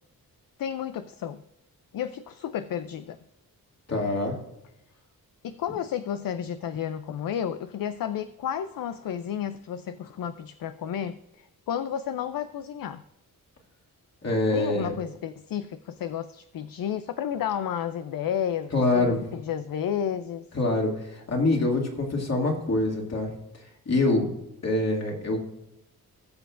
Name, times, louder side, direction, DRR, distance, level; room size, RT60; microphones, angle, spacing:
voice 1, 0.6-1.4 1.9-3.2 5.4-13.0 14.5-20.5, left 9 dB, 65° left, 0.5 m, -32 dB
voice 2, 3.9-4.4 14.2-14.9 18.7-19.2 20.5-23.3 23.9-24.3 24.6-25.4, left 2 dB, 45° left, 2.5 m, -25 dB
19.5 x 6.9 x 2.5 m
cardioid pair, 90°, 36 cm